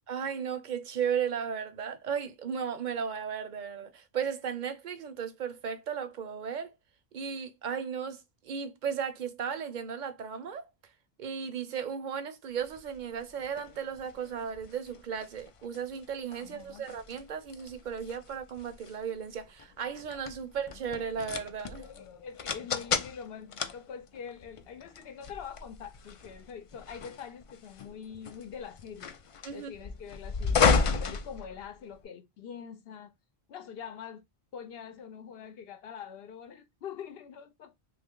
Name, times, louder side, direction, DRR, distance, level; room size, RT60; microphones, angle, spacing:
voice 1, 0.1-6.7 7.1-10.7 11.2-21.9 29.4-29.7, right 7 dB, 55° right, 0.7 m, -35 dB
sound 1, 12.7-32.0, left 5 dB, 55° left, 0.3 m, -34 dB
voice 2, 16.4-16.8 21.8-29.1 29.5-33.1 33.5-34.3 34.5-37.7, left 7 dB, 70° left, 0.8 m, -44 dB
3.0 x 2.4 x 3.6 m
omnidirectional pair, 1.0 m